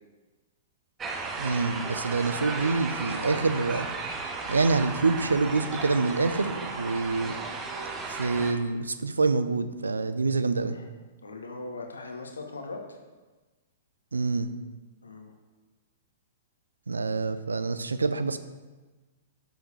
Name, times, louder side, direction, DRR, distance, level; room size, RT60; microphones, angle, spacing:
sound 1, 1.0-8.5, right 4 dB, 20° right, 1.0 m, -35 dB
voice 1, 1.4-3.9 4.5-7.4 8.1-10.8 14.1-14.5 16.9-18.4, right 3 dB, 75° right, 12 dB, 0.5 m, -26 dB
voice 2, 11.2-13.0 15.0-15.3, left 3 dB, 70° left, 3 dB, 1.2 m, -39 dB
12.5 x 6.6 x 3.3 m, 1.2 s
figure-of-eight pair, 105°, 0 cm